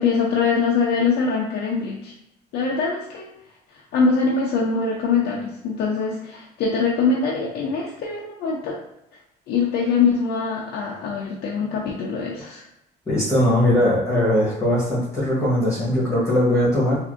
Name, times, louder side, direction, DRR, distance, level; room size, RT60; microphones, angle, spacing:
voice 1, 0.0-2.1 2.5-3.3 3.9-8.8 9.5-12.6, left 5 dB, 70° left, -2 dB, 0.6 m, -23 dB
voice 2, 13.1-17.0, left 1 dB, 15° left, -8 dB, 1.2 m, -20 dB
3.4 x 2.6 x 2.5 m, 0.84 s
cardioid pair, 110°, 17 cm